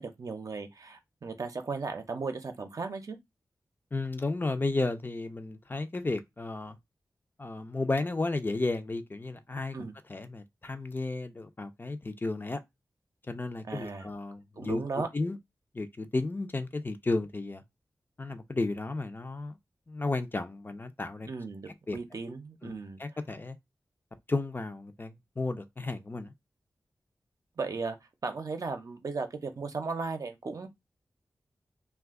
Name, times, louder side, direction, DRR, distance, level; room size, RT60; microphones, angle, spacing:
voice 1, 0.0-3.2 9.7-9.9 13.7-14.1 14.6-15.1 21.3-23.0 27.6-28.0 28.2-30.7, right 4 dB, 60° right, 0.6 m, -36 dB
voice 2, 3.9-6.8 7.4-9.8 10.1-12.6 13.3-14.8 15.1-15.4 15.7-17.6 18.2-19.6 19.9-21.3 21.7-22.0 22.6-22.7 23.0-23.6 24.3-26.3, left 2 dB, 30° left, 0.5 m, -33 dB
2.5 x 2.3 x 3.5 m
wide cardioid pair, 75°, 7 cm